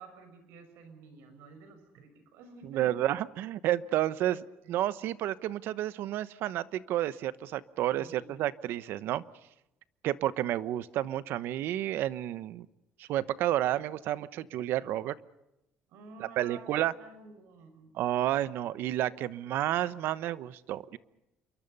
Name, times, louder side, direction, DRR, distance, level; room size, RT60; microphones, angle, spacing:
voice 1, 0.0-2.9 4.2-4.8 7.8-8.3 15.9-17.9, right 4 dB, 90° right, 8 dB, 6.2 m, -51 dB
voice 2, 2.7-9.2 10.0-12.7 13.0-15.1 16.4-16.9 17.9-21.0, right 13 dB, 70° right, 16 dB, 1.0 m, -31 dB
28.0 x 23.5 x 5.5 m, 0.90 s
cardioid pair, 155°, 4 cm